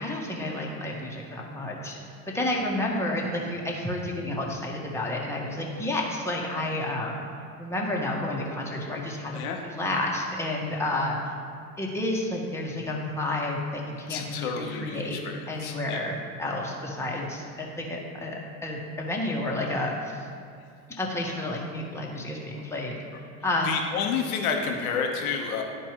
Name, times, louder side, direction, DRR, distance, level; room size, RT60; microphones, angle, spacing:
voice 1, 0.0-2.0 2.3-7.2 7.6-11.2 11.8-15.2 15.5-20.2 21.0-23.0 23.4-23.7, left 1 dB, 5° left, -2 dB, 1.2 m, -30 dB
voice 2, 14.1-16.0 23.6-25.6, left 6 dB, 65° left, 3 dB, 1.1 m, -30 dB
12.0 x 4.5 x 3.0 m, 2.4 s
hypercardioid pair, 85°, 46 cm